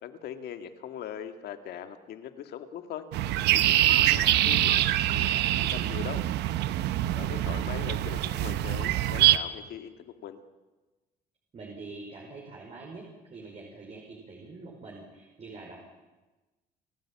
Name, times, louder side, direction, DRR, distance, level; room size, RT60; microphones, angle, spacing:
voice 1, 0.0-3.1 3.5-6.2 7.2-10.4, left 9 dB, 70° left, 8 dB, 2.0 m, -41 dB
sound 1, 3.1-9.4, right 14 dB, 80° right, 1.0 m, -24 dB
voice 2, 7.1-7.8 11.5-15.8, right 3 dB, 40° right, -1 dB, 5.1 m, -45 dB
29.0 x 13.5 x 8.8 m, 1.2 s
cardioid pair, 110°, 17 cm